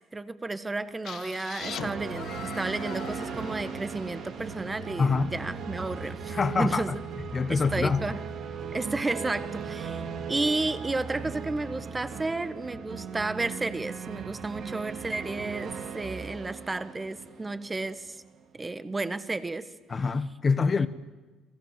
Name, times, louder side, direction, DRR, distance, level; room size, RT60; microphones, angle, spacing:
voice 1, 0.1-6.9 7.5-8.2 8.7-18.2 18.5-19.7 20.7-20.9, right 2 dB, 15° right, 1.4 m, -32 dB
sound 1, 1.0-4.8, left 10 dB, 60° left, 1.1 m, -42 dB
sound 2, 1.6-18.4, right 6 dB, 60° right, 2.4 m, -38 dB
voice 2, 5.0-5.3 6.3-6.9 7.3-8.2 19.9-20.9, left 4 dB, 30° left, 1.4 m, -25 dB
30.0 x 22.5 x 7.6 m
cardioid pair, 110°, 0 cm